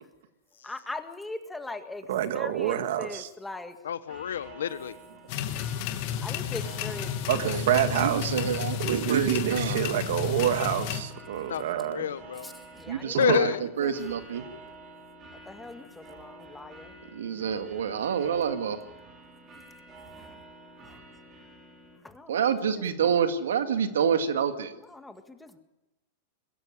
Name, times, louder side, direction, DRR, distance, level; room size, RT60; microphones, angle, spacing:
voice 1, 0.6-3.8 6.2-7.5 12.4-13.4 13.8-13.9 15.5-17.0 20.1-20.4 20.9-21.0 22.0-22.8 24.8-25.6, left 2 dB, 5° left, 1.9 m, -41 dB
voice 2, 2.1-3.3 7.3-8.3 8.8-12.1 13.3-13.4, right 11 dB, 70° right, 1.9 m, -27 dB
voice 3, 3.8-5.0 11.5-12.5 13.2-13.7, left 9 dB, 90° left, 1.1 m, -28 dB
sound 1, 4.1-22.0, right 2 dB, 30° right, 6.0 m, -49 dB
sound 2, 5.3-11.0, left 9 dB, 55° left, 2.1 m, -32 dB
voice 4, 7.4-9.8 12.9-13.5 13.8-14.4 17.1-18.8 22.3-24.7, right 7 dB, 90° right, 2.0 m, -28 dB
22.5 x 13.0 x 10.0 m
hypercardioid pair, 130°, 0 cm